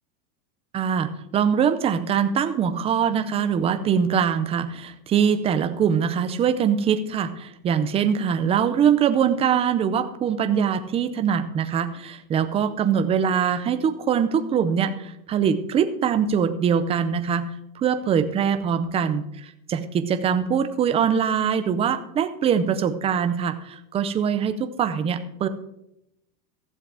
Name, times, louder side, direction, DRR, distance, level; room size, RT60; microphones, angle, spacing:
voice 1, 0.7-17.5 17.8-25.5, right 7 dB, 15° right, 9 dB, 0.4 m, -23 dB
14.5 x 7.5 x 4.7 m, 0.81 s
supercardioid pair, 145°, 50 cm